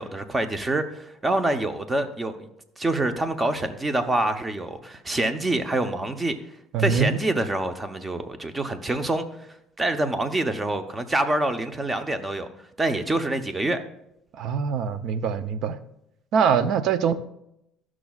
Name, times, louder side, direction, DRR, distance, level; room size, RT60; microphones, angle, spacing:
voice 1, 0.0-2.5 2.8-6.3 6.8-9.3 9.8-12.5 12.8-13.8, right 2 dB, 20° right, 8 dB, 0.8 m, -26 dB
voice 2, 6.7-7.2 14.3-15.8 16.3-17.1, right 6 dB, 65° right, 13 dB, 0.5 m, -23 dB
12.0 x 6.1 x 2.4 m, 0.82 s
supercardioid pair, 95°, 0 cm